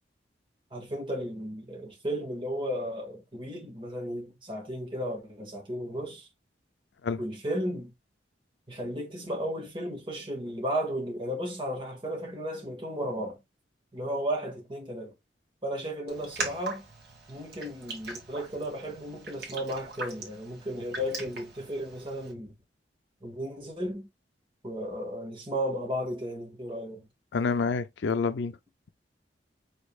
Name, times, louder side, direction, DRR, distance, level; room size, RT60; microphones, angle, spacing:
voice 1, 0.7-6.3 7.2-7.9 8.7-13.4 13.9-15.1 15.6-16.9 17.3-22.5 23.2-24.1 24.6-27.1, equal, 30° right, 1.8 m, -34 dB
Raindrop, 16.1-22.3, right 3 dB, 60° right, 1.8 m, -41 dB
voice 2, 27.3-28.5, left 4 dB, 80° left, 0.5 m, -28 dB
5.2 x 4.2 x 2.3 m
head